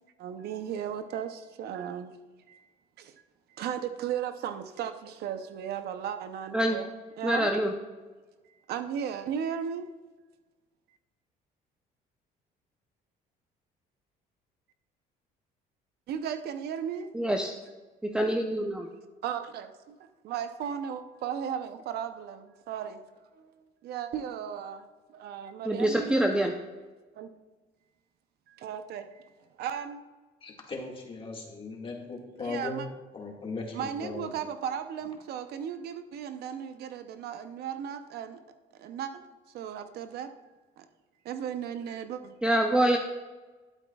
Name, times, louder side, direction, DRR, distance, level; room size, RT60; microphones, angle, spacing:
voice 1, 0.2-2.2 2.5-2.7 3.0-3.1 3.5-6.9 7.2-7.5 8.7-9.9 16.1-17.1 19.2-23.0 23.3-23.5 23.8-24.8 25.1-26.2 27.1-27.3 28.5-29.3 29.6-30.0 32.4-32.9 33.7-38.4 38.8-39.2 39.5-40.3 40.8-40.9 41.2-42.3, right 8 dB, 70° right, 9 dB, 0.7 m, -36 dB
voice 2, 7.2-7.7 17.1-17.5 18.0-18.9 25.7-26.5 42.4-43.0, right 1 dB, 5° right, 3 dB, 0.6 m, -25 dB
voice 3, 30.4-32.9 33.1-34.4, left 3 dB, 30° left, 0 dB, 1.9 m, -38 dB
11.5 x 8.2 x 2.3 m, 1.3 s
cardioid pair, 110°, 17 cm